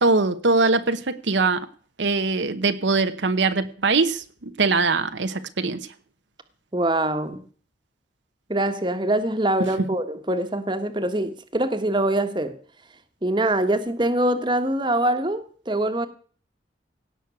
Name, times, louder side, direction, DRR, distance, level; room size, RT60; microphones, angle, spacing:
voice 1, 0.0-1.7 2.0-5.8 9.8-9.9, right 3 dB, 80° right, 1.0 m, -22 dB
voice 2, 6.7-7.4 8.5-12.6 13.2-16.1, right 1 dB, 25° right, 1.4 m, -24 dB
17.5 x 6.4 x 8.2 m
head